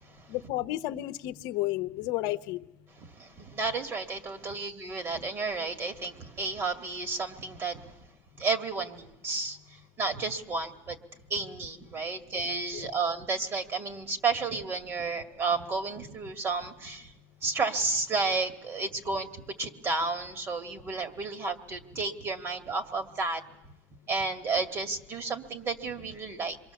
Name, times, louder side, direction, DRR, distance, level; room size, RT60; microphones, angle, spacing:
voice 1, 0.3-2.7 12.8-13.0, left 16 dB, 65° left, 0.8 m, -32 dB
voice 2, 3.0-7.9 8.4-9.6 10.0-11.0 11.3-17.1 17.4-23.4 24.1-26.6, right 4 dB, 35° right, 2.1 m, -32 dB
27.5 x 23.0 x 7.1 m
supercardioid pair, 125°, 8 cm